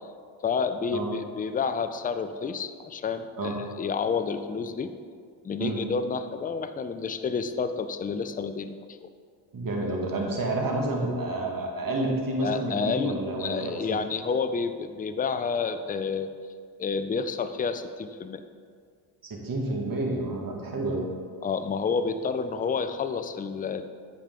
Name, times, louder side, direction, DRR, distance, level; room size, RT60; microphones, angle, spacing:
voice 1, 0.4-4.9 5.4-9.1 12.4-16.3 16.8-18.4 21.4-23.8, left 5 dB, 20° left, 10 dB, 0.4 m, -29 dB
voice 2, 9.5-14.0 19.2-21.0, right 2 dB, 40° right, 0 dB, 1.7 m, -29 dB
8.5 x 5.1 x 3.8 m, 2.1 s
supercardioid pair, 60°, 50 cm